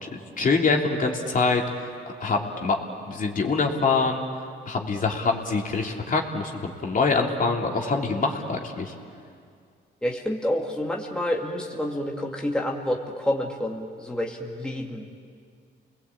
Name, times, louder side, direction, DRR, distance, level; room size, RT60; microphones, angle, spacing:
voice 1, 0.4-1.8 2.2-2.8 3.1-4.2 4.7-8.9, left 4 dB, 40° left, 1 dB, 3.1 m, -24 dB
voice 2, 10.0-15.1, left 1 dB, 5° left, 0 dB, 2.3 m, -28 dB
29.5 x 20.5 x 8.8 m, 2.3 s
cardioid pair, 90°, 20 cm